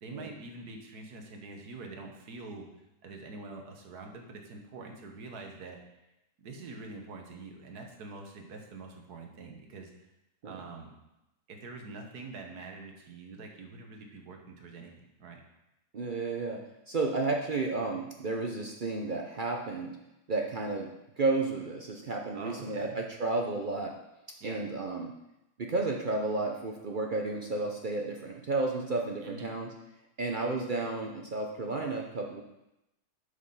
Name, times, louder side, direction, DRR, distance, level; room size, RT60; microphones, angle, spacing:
voice 1, 0.0-2.7 3.0-5.8 6.4-9.9 10.4-10.9 11.5-14.9 15.2-15.4 22.3-23.0 24.4-24.6 29.2-29.6, right 3 dB, 75° right, 3 dB, 1.7 m, -45 dB
voice 2, 15.9-16.6 16.9-20.0 20.3-20.9 21.2-23.9 24.4-25.1 25.6-29.7 30.2-32.4, right 3 dB, 50° right, 1 dB, 0.6 m, -32 dB
8.2 x 5.1 x 5.6 m, 0.91 s
omnidirectional pair, 1.7 m